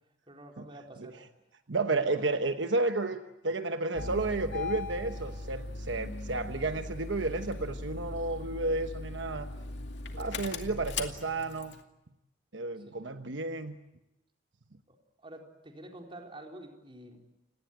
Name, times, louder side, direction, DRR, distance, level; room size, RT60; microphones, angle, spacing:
voice 1, 0.3-1.2 2.1-2.4 12.8-13.1 14.9-17.2, right 1 dB, 30° right, 2 dB, 4.1 m, -49 dB
voice 2, 1.7-9.5 10.1-11.8 12.5-13.8, right 2 dB, 75° right, 8 dB, 1.1 m, -32 dB
Engine starting, 3.9-11.8, left 3 dB, 65° left, 2.3 m, -39 dB
30.0 x 19.0 x 9.2 m, 0.91 s
head